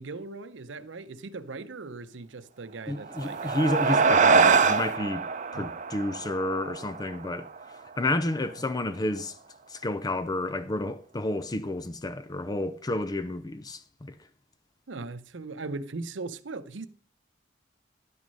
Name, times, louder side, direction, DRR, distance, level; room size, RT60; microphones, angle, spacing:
voice 1, 0.0-3.5 5.5-5.7 14.9-16.9, right 3 dB, 85° right, 0.7 m, -39 dB
voice 2, 2.9-5.2 5.5-7.5 8.0-9.3 9.7-14.1, left 1 dB, 20° left, 0.5 m, -30 dB
sound 1, 3.0-7.8, right 5 dB, 45° right, 0.7 m, -24 dB
10.5 x 6.3 x 5.4 m
head